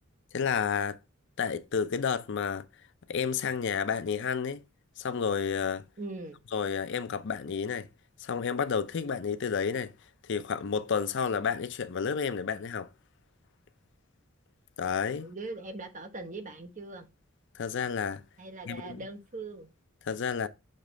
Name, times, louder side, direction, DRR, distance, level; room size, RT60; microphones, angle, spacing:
voice 1, 0.3-1.0 1.4-2.7 3.1-4.6 5.0-5.9 6.5-7.9 8.2-9.9 10.2-12.9 14.8-15.3 17.5-18.2 18.7-19.0 20.0-20.5, left 6 dB, 65° left, 0.5 m, -30 dB
voice 2, 6.0-6.4 15.2-17.1 18.4-19.7, right 2 dB, 40° right, 1.1 m, -41 dB
6.5 x 3.2 x 5.1 m
head